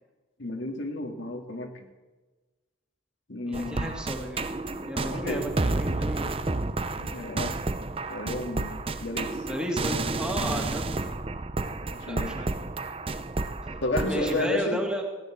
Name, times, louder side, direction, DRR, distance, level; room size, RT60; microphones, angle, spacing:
voice 1, 0.4-1.9 3.3-3.9 4.9-5.4 7.0-7.6 8.1-8.7 9.0-9.5 11.9-12.3 13.8-14.8, left 2 dB, 75° left, 3 dB, 2.1 m, -32 dB
voice 2, 3.5-4.5 4.7-6.6 9.4-11.2 12.0-12.5 13.2-13.3 14.1-15.0, equal, 5° right, 1 dB, 1.9 m, -33 dB
sound 1, 3.5-14.5, right 2 dB, 30° right, 0.6 m, -31 dB
16.0 x 10.5 x 7.4 m, 1.3 s
head